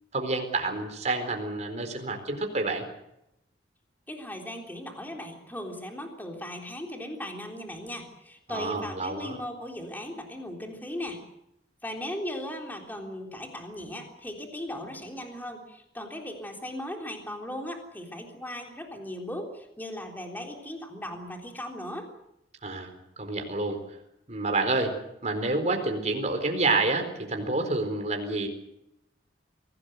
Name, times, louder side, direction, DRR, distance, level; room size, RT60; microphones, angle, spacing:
voice 1, 0.1-2.9 8.5-9.4 22.6-23.8 24.3-25.0 25.2-28.5, right 3 dB, 40° right, 5 dB, 4.3 m, -28 dB
voice 2, 4.1-11.2 11.8-22.1, left 1 dB, 10° left, 2 dB, 3.6 m, -38 dB
24.0 x 17.5 x 7.9 m, 0.84 s
head